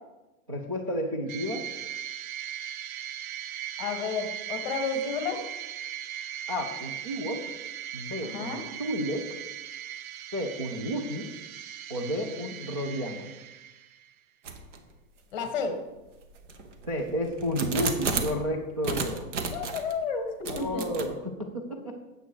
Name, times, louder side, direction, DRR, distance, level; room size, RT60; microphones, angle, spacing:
voice 1, 0.5-1.6 6.5-7.4 7.9-9.2 10.3-11.3 11.9-13.3 16.9-19.3 20.5-21.9, equal, 25° right, -4 dB, 0.3 m, -31 dB
sound 1, 1.3-14.1, right 10 dB, 75° right, 0.8 m, -39 dB
voice 2, 3.8-5.4 8.2-8.6 15.3-15.8 19.5-20.8, left 5 dB, 30° left, 6 dB, 1.4 m, -31 dB
sound 2, 14.4-14.8 15.4-15.5 16.2-18.4 18.8-19.9 20.4-21.1, right 4 dB, 55° right, 1.3 m, -32 dB
9.1 x 7.7 x 4.5 m, 1.0 s
supercardioid pair, 180°, 42 cm